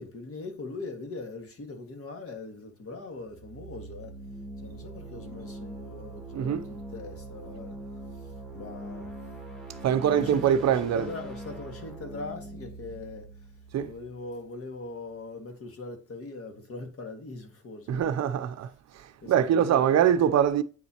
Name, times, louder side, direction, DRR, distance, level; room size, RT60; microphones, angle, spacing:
voice 1, 0.0-4.2 4.6-7.8 8.1-9.3 10.1-13.5 13.8-18.4 19.2-19.9, left 3 dB, 50° left, 1.9 m, -41 dB
sound 1, 3.2-15.0, right 2 dB, ahead, 2.2 m, -43 dB
voice 2, 6.3-6.7 9.8-11.1 13.7-13.9 17.9-20.6, right 9 dB, 60° right, 0.6 m, -24 dB
9.1 x 4.1 x 2.8 m
cardioid pair, 90°, 30 cm